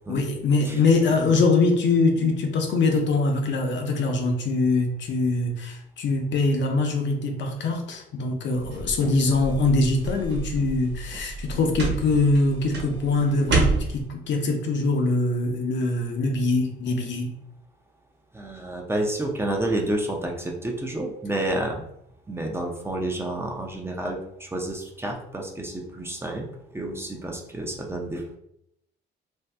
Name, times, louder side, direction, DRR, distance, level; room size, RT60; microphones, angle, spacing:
voice 1, 0.1-17.4, left 3 dB, 65° left, 2 dB, 0.7 m, -23 dB
sound 1, 8.5-14.0, right 3 dB, 60° right, 1.1 m, -29 dB
voice 2, 18.3-21.8 22.3-26.5 26.7-28.4, right 1 dB, 10° right, 1 dB, 0.5 m, -29 dB
2.7 x 2.2 x 3.3 m, 0.75 s
cardioid pair, 90°, 20 cm